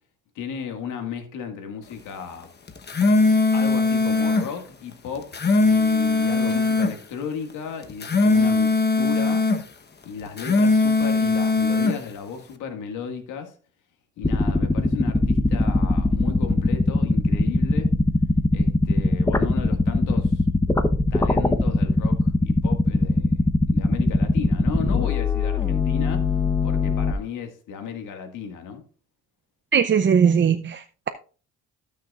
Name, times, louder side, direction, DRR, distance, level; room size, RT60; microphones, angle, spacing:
voice 1, 0.4-2.5 2.9-3.0 3.5-9.5 10.0-13.5 14.2-17.9 18.5-20.4 21.1-26.3 26.6-28.8, left 7 dB, 90° left, 1.9 m, -35 dB
sound 1, 2.7-4.5 5.2-7.0 7.8-9.6 10.3-12.0, left 3 dB, 35° left, 1.1 m, -20 dB
sound 2, 14.2-27.1, left 2 dB, 10° left, 0.9 m, -21 dB
voice 2, 29.7-31.1, right 7 dB, 40° right, 0.6 m, -20 dB
17.0 x 6.5 x 2.5 m
cardioid pair, 90°, 30 cm